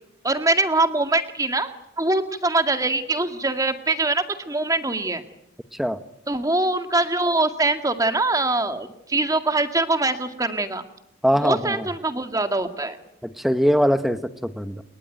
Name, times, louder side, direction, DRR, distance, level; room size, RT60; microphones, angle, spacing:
voice 1, 0.2-1.7 2.0-5.2 6.3-10.8 11.4-13.0, right 2 dB, 20° right, 8 dB, 2.0 m, -23 dB
voice 2, 11.2-11.9 13.2-14.8, equal, ahead, 11 dB, 1.2 m, -22 dB
29.0 x 22.5 x 9.1 m, 0.82 s
head